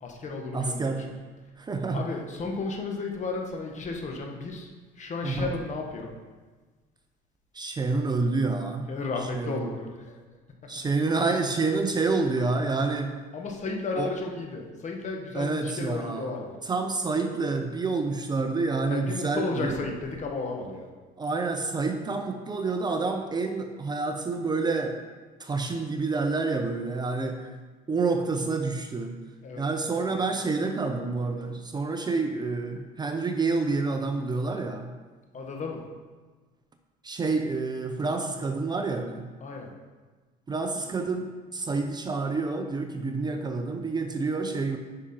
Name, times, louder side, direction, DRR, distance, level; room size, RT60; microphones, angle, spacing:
voice 1, 0.0-0.9 1.9-4.7 5.0-6.1 8.9-10.2 13.3-16.5 18.8-20.9 29.4-29.6 30.1-30.2 35.3-35.8 39.4-39.7, left 3 dB, 40° left, 2 dB, 1.5 m, -33 dB
voice 2, 0.5-1.1 1.6-2.1 5.2-5.5 7.5-8.9 9.2-9.6 10.7-13.2 14.0-14.1 15.3-16.3 16.6-19.8 21.2-25.0 25.4-27.5 27.9-29.2 29.6-34.9 37.0-39.2 40.5-44.8, right 3 dB, 25° right, 5 dB, 0.7 m, -28 dB
9.7 x 5.9 x 4.4 m, 1.4 s
cardioid pair, 115°, 18 cm